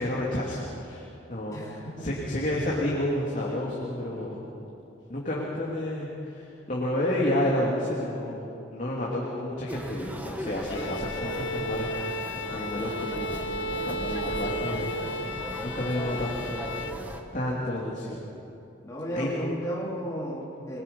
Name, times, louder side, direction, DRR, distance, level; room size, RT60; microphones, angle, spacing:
voice 1, 0.0-1.6 2.0-4.4 5.1-8.5 8.7-13.4 13.6-16.6 17.3-18.2 19.1-19.3, left 1 dB, 45° left, -5 dB, 3.1 m, -30 dB
voice 2, 1.5-2.1 15.2-15.4 18.8-20.8, equal, 15° left, -5 dB, 3.9 m, -34 dB
sound 1, 9.7-17.2, equal, 10° right, 1.5 m, -38 dB
Bowed string instrument, 10.7-17.1, equal, 85° left, 1.1 m, -34 dB
27.0 x 22.0 x 5.6 m, 2.7 s
head